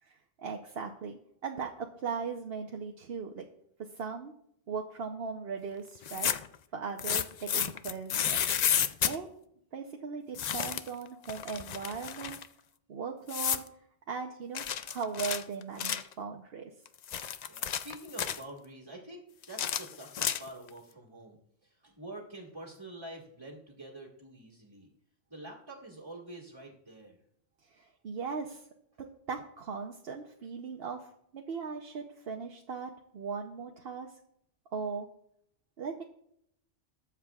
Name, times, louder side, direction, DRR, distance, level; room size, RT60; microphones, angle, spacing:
voice 1, 0.0-3.5 3.8-4.3 4.7-6.3 6.7-8.4 9.0-9.3 9.7-12.4 12.9-13.6 14.1-16.7 27.6-28.7 29.0-34.1 34.7-35.1 35.8-36.0, right 5 dB, 55° right, 2 dB, 1.0 m, -38 dB
sound 1, 5.9-6.5 7.0-9.2 10.3-10.9 11.2-12.5 13.3-13.7 14.5-16.1 16.8-18.4 19.4-20.7, left 8 dB, 70° left, 0.4 m, -31 dB
voice 2, 17.5-24.9 25.3-27.2, right 1 dB, 20° right, -4 dB, 1.7 m, -47 dB
21.0 x 7.2 x 2.4 m, 0.72 s
omnidirectional pair, 1.3 m